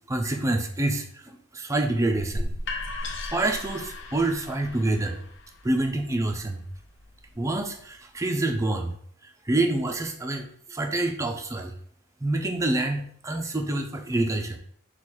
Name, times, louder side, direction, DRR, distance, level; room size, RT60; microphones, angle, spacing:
voice 1, 0.1-2.5 3.0-5.3 5.6-6.6 7.4-8.9 9.2-11.7 12.2-14.6, right 2 dB, 15° right, 3 dB, 0.4 m, -27 dB
sound 1, 2.2-8.0, left 2 dB, 60° left, 0.5 m, -37 dB
4.6 x 2.3 x 4.2 m, 0.62 s
head